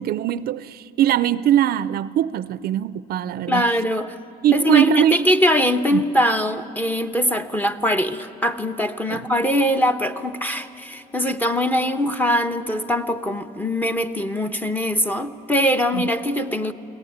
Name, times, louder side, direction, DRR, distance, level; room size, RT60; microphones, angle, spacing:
voice 1, 0.0-3.7 4.4-5.2 5.9-6.0 9.1-9.2 15.9-16.0, right 11 dB, 65° right, 16 dB, 0.5 m, -21 dB
voice 2, 3.5-4.1 4.5-16.7, equal, 10° left, 7 dB, 1.1 m, -22 dB
23.0 x 17.5 x 9.5 m, 3.0 s
cardioid pair, 110°, 17 cm